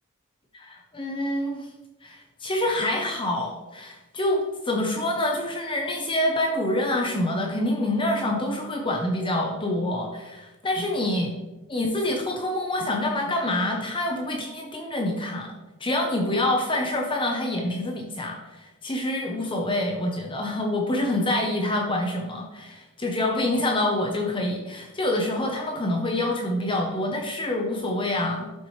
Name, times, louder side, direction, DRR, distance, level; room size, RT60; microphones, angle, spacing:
voice 1, 0.5-1.7 2.0-11.3 11.7-15.5 15.8-28.5, left 1 dB, 25° left, 1 dB, 0.8 m, -26 dB
12.0 x 6.0 x 3.2 m, 1.1 s
head